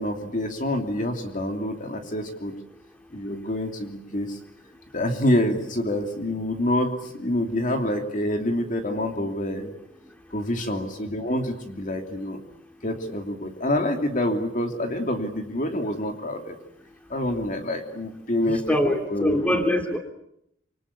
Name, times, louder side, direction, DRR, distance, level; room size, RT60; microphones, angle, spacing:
voice 1, 0.0-2.5 3.1-4.4 4.9-9.7 10.3-12.4 12.8-16.6 17.1-19.6, left 1 dB, 40° left, 5 dB, 2.9 m, -27 dB
voice 2, 18.7-20.0, left 1 dB, 5° left, 4 dB, 3.0 m, -23 dB
27.0 x 25.0 x 8.4 m, 0.75 s
head